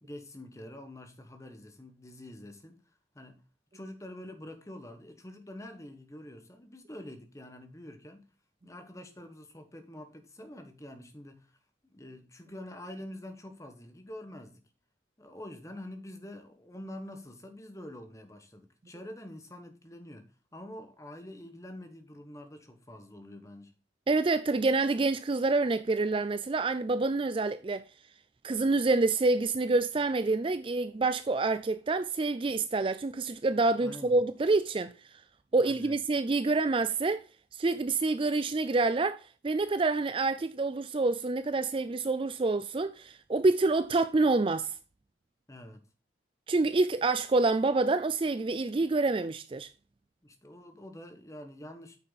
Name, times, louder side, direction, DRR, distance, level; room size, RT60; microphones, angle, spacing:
voice 1, 0.0-2.8 3.1-3.4 3.7-8.3 8.6-11.5 11.8-14.6 15.2-23.7 33.8-34.2 35.6-36.0 45.5-45.8 50.2-52.0, left 1 dB, 15° left, 1.5 m, -46 dB
voice 2, 24.1-27.8 28.4-34.9 35.5-37.2 37.5-44.7 46.5-49.7, right 3 dB, 30° right, 0.4 m, -27 dB
9.1 x 6.6 x 4.1 m
head